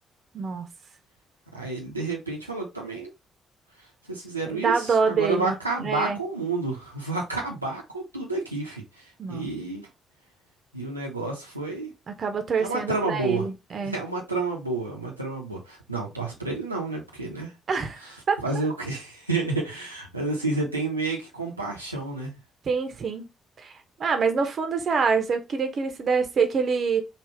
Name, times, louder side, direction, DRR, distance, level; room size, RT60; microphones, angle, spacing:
voice 1, 1.5-3.1 4.1-8.8 9.3-9.9 10.7-11.9 12.6-13.5 13.8-17.5 18.4-22.3, right 3 dB, 90° right, 0.6 m, -30 dB
voice 2, 4.5-6.2 9.2-9.5 12.1-14.0 17.7-18.0 18.3-18.7 22.7-23.3 23.6-23.7 24.0-27.0, right 5 dB, 45° right, 0.7 m, -26 dB
3.4 x 2.4 x 4.5 m
figure-of-eight pair, 45°, 0 cm